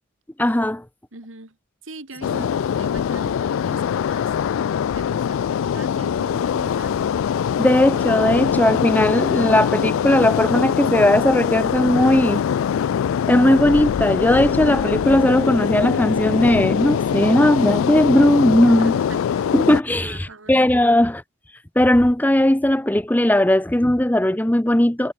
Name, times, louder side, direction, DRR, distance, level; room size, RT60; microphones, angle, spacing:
voice 1, 0.4-0.8 2.3-2.4 7.6-12.4 13.3-19.0 19.5-21.2 21.8-25.1, left 1 dB, 10° left, 0.6 m, -17 dB
voice 2, 1.1-1.6 1.8-7.1 18.6-19.6 20.0-20.6, right 2 dB, 75° right, 3.2 m, -42 dB
sound 1, 2.2-19.8, left 8 dB, 85° left, 0.3 m, -22 dB
head